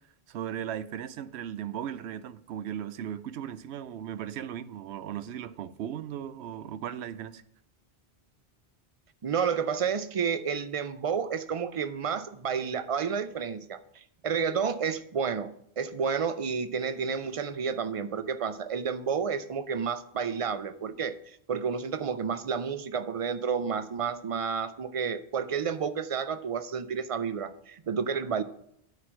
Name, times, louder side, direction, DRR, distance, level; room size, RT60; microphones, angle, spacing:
voice 1, 0.3-7.4, right 10 dB, 85° right, 0.8 m, -37 dB
voice 2, 9.2-28.4, right 6 dB, 45° right, 0.5 m, -31 dB
9.3 x 4.8 x 6.1 m
omnidirectional pair, 1.1 m